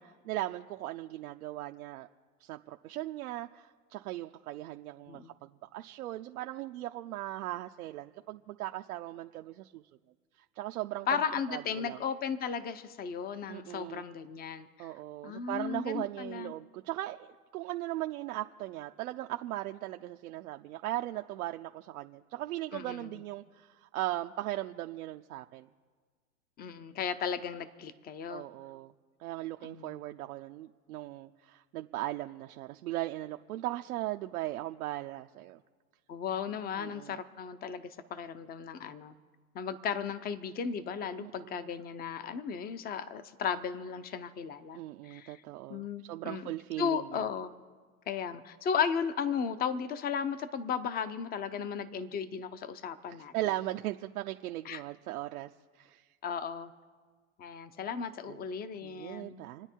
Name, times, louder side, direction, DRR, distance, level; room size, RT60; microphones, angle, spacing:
voice 1, 0.0-2.1 2.4-9.9 10.4-11.2 11.5-12.0 13.5-14.0 14.8-25.7 28.3-28.9 29.2-35.6 36.8-37.2 41.2-41.7 44.7-47.3 53.3-56.1 58.3-58.4 58.8-59.7, right 15 dB, 70° right, 5 dB, 0.8 m, -38 dB
voice 2, 11.1-14.9 15.2-16.5 22.7-23.1 26.6-28.4 29.6-30.0 36.1-39.1 39.5-45.4 45.7-46.5 46.8-47.5 48.1-53.3 54.6-54.8 56.2-56.7 57.4-59.4, left 7 dB, 20° left, 12 dB, 0.8 m, -35 dB
28.5 x 9.7 x 4.6 m, 1.5 s
hypercardioid pair, 125°, 44 cm